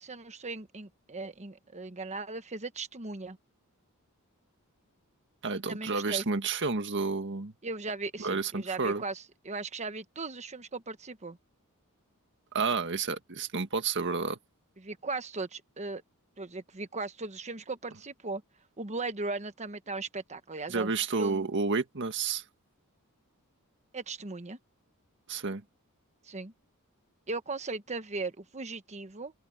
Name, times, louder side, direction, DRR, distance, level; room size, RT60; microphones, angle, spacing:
voice 1, 0.0-3.4 5.7-6.3 7.6-11.4 14.8-16.0 16.4-18.4 18.8-21.5 23.9-24.6 26.2-26.5 27.3-29.3, right 3 dB, 30° right, 1.2 m, -38 dB
voice 2, 5.4-7.5 8.2-9.0 12.5-14.4 20.7-22.4 25.3-25.6, right 4 dB, 55° right, 1.8 m, -30 dB
open air
head